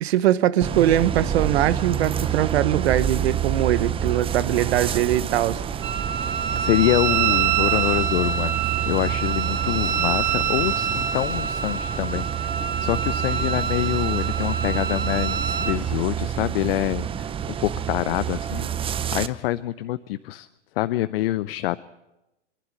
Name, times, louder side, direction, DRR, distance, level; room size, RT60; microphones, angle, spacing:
voice 1, 0.0-5.6, right 12 dB, 65° right, 15 dB, 1.2 m, -21 dB
sound 1, 0.6-19.3, right 9 dB, 15° right, 0.6 m, -28 dB
Wind instrument woodwind instrument, 5.8-15.8, right 8 dB, 30° right, 1.5 m, -26 dB
voice 2, 6.5-12.6 12.8-17.3 17.6-18.7 19.1-20.5 20.8-21.8, left 16 dB, 55° left, 15 dB, 0.7 m, -26 dB
25.5 x 11.5 x 9.7 m, 0.98 s
hypercardioid pair, 110°, 35 cm